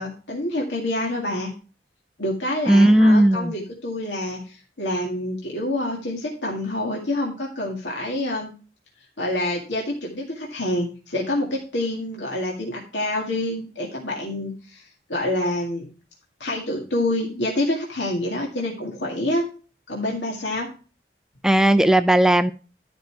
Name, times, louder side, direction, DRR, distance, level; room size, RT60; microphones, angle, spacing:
voice 1, 0.0-1.5 2.2-8.5 9.2-15.9 16.4-19.4 19.9-20.7, left 1 dB, 75° left, -2 dB, 2.0 m, -27 dB
voice 2, 2.7-3.5 21.4-22.5, right 1 dB, 5° right, 10 dB, 0.4 m, -16 dB
12.0 x 5.3 x 4.6 m, 0.36 s
head